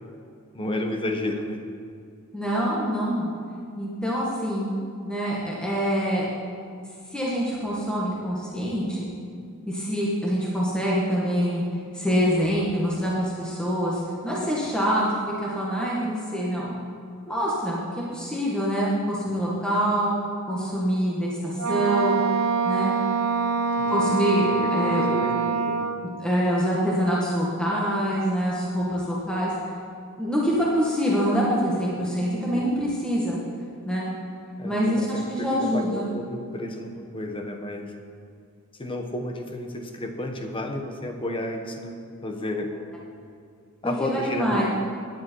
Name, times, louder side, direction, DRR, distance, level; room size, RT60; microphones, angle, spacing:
voice 1, 0.5-1.6 19.3-19.5 23.8-25.9 32.5-32.7 34.6-37.9 38.8-41.9 42.2-42.7 43.8-44.6, left 1 dB, 25° left, 4 dB, 1.2 m, -32 dB
voice 2, 2.3-3.3 3.8-4.7 5.0-6.3 7.1-9.1 9.7-11.6 11.9-16.7 17.3-17.8 18.1-20.1 20.5-22.2 22.7-22.9 23.9-25.2 26.2-29.5 30.2-33.4 33.9-34.1 34.6-36.1 43.8-44.6, equal, 5° left, -6 dB, 1.9 m, -25 dB
Wind instrument woodwind instrument, 21.6-26.1, right 4 dB, 85° right, 0.7 m, -25 dB
17.0 x 10.5 x 4.7 m, 2.3 s
head